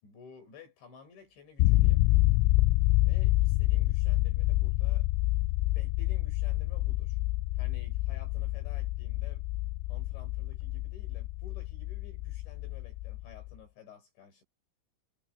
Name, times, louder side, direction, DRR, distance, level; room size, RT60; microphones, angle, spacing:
voice 1, 0.0-2.2 3.0-5.1 5.7-7.2 7.5-9.4 9.9-14.4, left 5 dB, 65° left, 7.9 m, -53 dB
sound 1, 1.6-13.5, left 19 dB, 85° left, 3.1 m, -27 dB
omnidirectional pair, 5.7 m